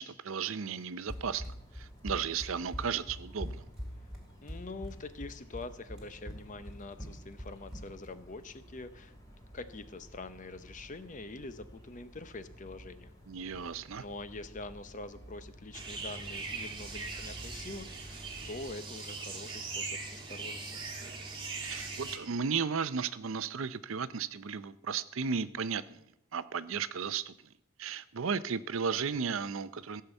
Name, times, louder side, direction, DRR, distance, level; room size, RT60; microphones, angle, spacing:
voice 1, 0.0-1.4 1.7-3.6 13.3-14.0 21.6-26.0 26.3-27.3 27.8-30.0, right 6 dB, 65° right, 15 dB, 0.6 m, -34 dB
sound 1, 1.1-18.7, equal, 15° left, 2.6 m, -53 dB
Run, 1.1-8.1, equal, 5° right, 3.0 m, -42 dB
voice 2, 4.4-9.1 9.5-13.1 13.9-20.8, left 2 dB, 35° left, 12 dB, 0.7 m, -45 dB
sound 2, 15.7-22.2, right 4 dB, 25° right, 1.7 m, -40 dB
15.0 x 5.7 x 8.1 m, 0.80 s
head